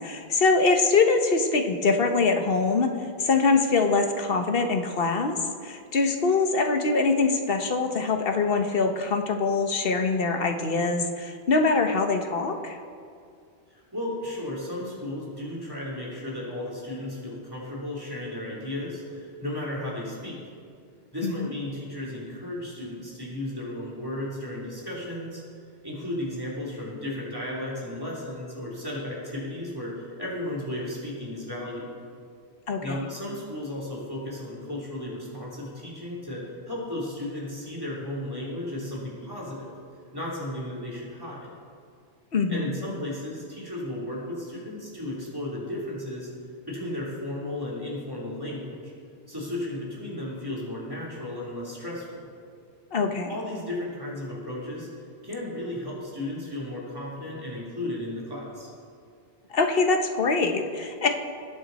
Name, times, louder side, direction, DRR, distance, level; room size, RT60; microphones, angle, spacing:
voice 1, 0.0-12.8 21.2-21.5 32.7-33.1 42.3-42.7 52.9-53.3 59.5-61.1, left 4 dB, 65° left, 5 dB, 1.2 m, -24 dB
voice 2, 13.7-20.4 21.1-25.4 25.8-31.9 32.8-39.7 40.1-41.5 42.5-46.3 46.7-48.9 49.3-52.3 53.3-54.9 55.2-58.7, left 1 dB, 20° right, -6 dB, 3.4 m, -34 dB
20.5 x 9.0 x 4.2 m, 2.2 s
omnidirectional pair, 1.0 m